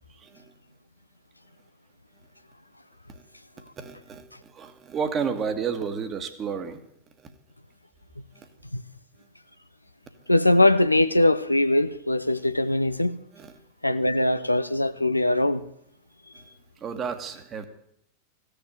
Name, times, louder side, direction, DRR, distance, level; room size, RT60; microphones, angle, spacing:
voice 1, 0.1-0.4 3.1-3.2 3.6-6.8 7.2-7.3 8.3-8.5 13.3-13.6 16.3-16.4 16.8-17.7, right 6 dB, 25° right, 1.6 m, -32 dB
voice 2, 10.3-13.2 13.8-15.6, left 1 dB, 85° left, 0.6 m, -21 dB
15.5 x 6.9 x 9.3 m
figure-of-eight pair, 90°, 0 cm